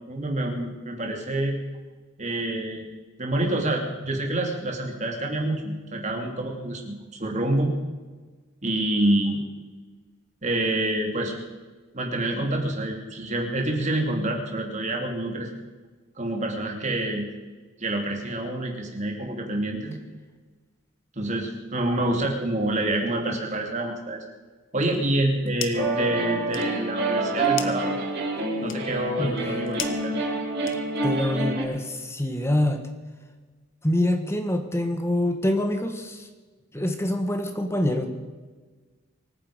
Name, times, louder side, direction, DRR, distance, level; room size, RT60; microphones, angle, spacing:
voice 1, 0.1-1.5 2.2-2.9 3.2-7.7 8.6-9.4 10.4-11.3 11.9-15.6 16.2-17.3 17.8-20.0 21.2-24.2 24.7-28.0 28.6-30.2, right 1 dB, 35° right, 1 dB, 2.9 m, -27 dB
sound 1, 25.1-26.0 26.3-31.2, left 9 dB, 75° left, 1.2 m, -39 dB
sound 2, 25.7-31.6, right 2 dB, 55° right, 5.0 m, -27 dB
voice 2, 29.2-29.6 31.0-32.8 33.8-36.3 36.7-38.1, left 1 dB, 15° left, 6 dB, 1.5 m, -25 dB
24.5 x 9.7 x 5.2 m, 1.3 s
head